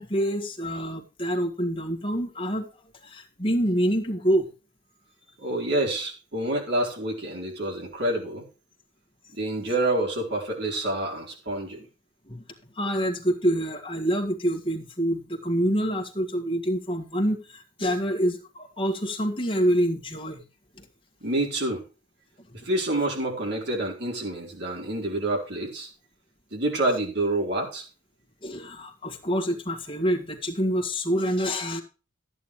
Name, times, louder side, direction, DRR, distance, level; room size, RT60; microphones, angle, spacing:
voice 1, 0.0-2.7 3.0-4.5 12.3-12.4 12.8-20.4 20.8-20.9 22.6-22.7 28.4-31.8, equal, 25° left, 2 dB, 2.0 m, -26 dB
voice 2, 5.4-8.4 9.4-11.8 21.2-21.8 22.5-25.9 26.5-27.9, right 1 dB, 50° right, 0 dB, 4.1 m, -27 dB
14.0 x 9.0 x 3.2 m, 0.34 s
head